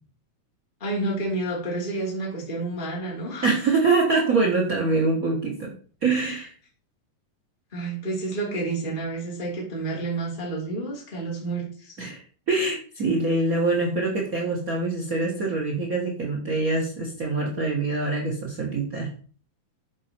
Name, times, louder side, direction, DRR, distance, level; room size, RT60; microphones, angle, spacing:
voice 1, 0.8-3.5 7.7-12.0, right 2 dB, 15° left, -3 dB, 3.0 m, -30 dB
voice 2, 3.4-5.7 6.0-6.5 12.0-12.2 12.5-19.1, right 3 dB, 75° right, -1 dB, 0.8 m, -24 dB
12.0 x 5.3 x 4.4 m, 0.42 s
omnidirectional pair, 4.1 m